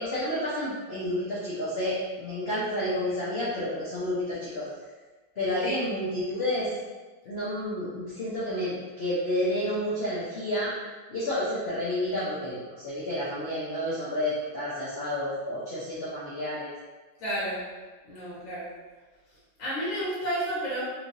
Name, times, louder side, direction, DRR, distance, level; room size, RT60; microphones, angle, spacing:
voice 1, 0.0-4.7 5.4-6.7 7.2-10.7 11.1-16.7, left 1 dB, 65° left, -9 dB, 0.6 m, -30 dB
voice 2, 17.2-17.6 18.0-18.7 19.6-20.8, equal, 45° left, -10 dB, 1.6 m, -31 dB
3.3 x 3.2 x 2.6 m, 1.3 s
omnidirectional pair, 2.2 m